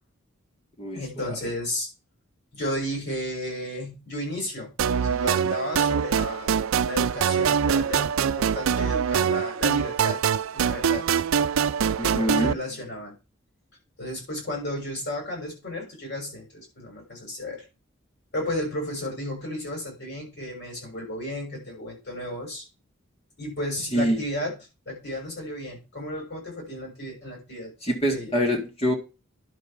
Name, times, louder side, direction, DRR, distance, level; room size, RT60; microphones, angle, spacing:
voice 1, 0.9-1.9 2.5-6.6 6.9-10.2 10.5-11.1 12.0-13.1 14.0-17.6 18.3-22.6 23.4-24.5 24.8-27.7 28.1-28.3, left 1 dB, 55° left, 0 dB, 6.5 m, -33 dB
sound 1, 4.8-12.5, right 7 dB, 75° right, 0.4 m, -24 dB
voice 2, 12.0-12.6 23.9-24.2 27.8-28.9, equal, 30° left, 2 dB, 1.8 m, -25 dB
10.5 x 5.2 x 5.9 m, 0.29 s
head